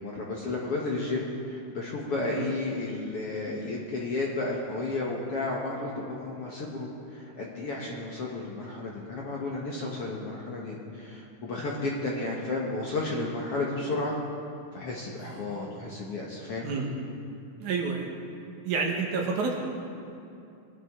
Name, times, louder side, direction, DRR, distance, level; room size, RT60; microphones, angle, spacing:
voice 1, 0.0-14.1 14.7-16.7, left 2 dB, 55° left, -3 dB, 1.7 m, -32 dB
voice 2, 15.2-15.7 16.6-16.9 17.6-18.1 18.6-19.5, right 4 dB, 65° right, 0 dB, 2.5 m, -30 dB
22.0 x 11.5 x 3.7 m, 2.6 s
omnidirectional pair, 4.1 m